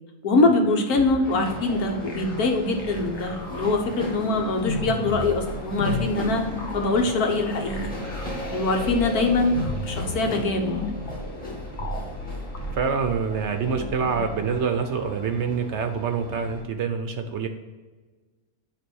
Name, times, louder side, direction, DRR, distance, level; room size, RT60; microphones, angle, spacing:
voice 1, 0.2-6.4 6.7-7.9 8.5-10.8, left 2 dB, 80° left, 3 dB, 1.6 m, -23 dB
sound 1, 0.9-14.5, left 2 dB, 50° left, 1.2 m, -34 dB
sound 2, 1.2-16.6, equal, 5° left, 2.3 m, -38 dB
voice 2, 12.7-17.5, right 6 dB, 60° right, 7 dB, 0.8 m, -26 dB
9.8 x 3.4 x 6.2 m, 1.3 s
omnidirectional pair, 1.6 m